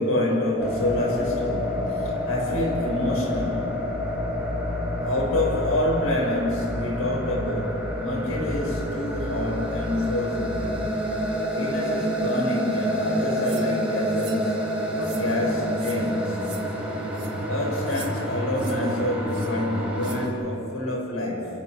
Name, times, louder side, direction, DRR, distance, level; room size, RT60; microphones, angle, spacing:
voice 1, 0.0-3.7 5.0-10.7 11.5-14.6 14.9-16.4 17.4-21.5, left 1 dB, 75° left, -2 dB, 7.3 m, -27 dB
sound 1, 0.6-20.3, equal, 5° right, 4.3 m, -28 dB
sound 2, 13.4-13.7 14.1-14.4 15.0-15.2 15.7-16.0 16.4-16.6 17.1-17.3 17.9-18.1 18.5-18.8 19.3-19.5 20.0-20.2, right 6 dB, 25° right, 4.0 m, -42 dB
30.0 x 17.0 x 6.9 m, 2.9 s
head